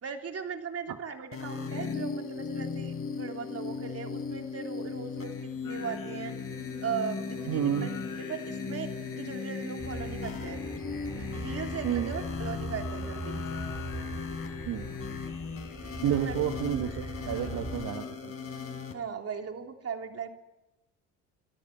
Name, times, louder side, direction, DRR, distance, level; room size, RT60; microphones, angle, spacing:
voice 1, 0.0-6.3 6.8-7.9 8.2-8.9 9.2-10.6 11.1-13.4 14.8-14.9 16.1-16.3 17.2-17.5 18.9-20.3, right 6 dB, 40° right, 4 dB, 3.4 m, -38 dB
sound 1, 1.3-18.9, left 5 dB, 40° left, 5.1 m, -37 dB
Singing, 5.6-18.1, left 4 dB, 55° left, 6.2 m, -48 dB
voice 2, 7.5-7.9 11.8-12.1 14.7-14.9 16.0-18.3, right 10 dB, 60° right, 6 dB, 1.7 m, -30 dB
sound 2, 9.8-17.9, right 2 dB, 10° right, 3.9 m, -41 dB
25.5 x 14.0 x 9.9 m, 1.0 s
supercardioid pair, 80°, 37 cm